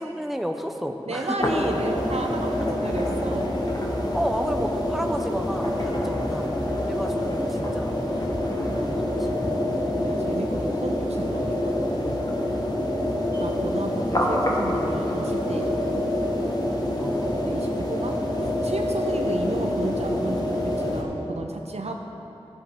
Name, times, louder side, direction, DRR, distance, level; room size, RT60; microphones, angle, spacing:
voice 1, 0.0-1.4 4.1-6.5 6.8-8.0 9.2-9.4 12.6-12.9 17.0-17.6, equal, ahead, 5 dB, 0.7 m, -31 dB
voice 2, 1.1-3.5 10.0-11.7 13.4-16.0 17.4-18.1 18.6-22.0, right 2 dB, 80° right, 2 dB, 0.7 m, -32 dB
sound 1, 1.4-21.0, left 1 dB, 40° left, 1.3 m, -26 dB
13.5 x 8.0 x 3.6 m, 2.9 s
wide cardioid pair, 45°, 11 cm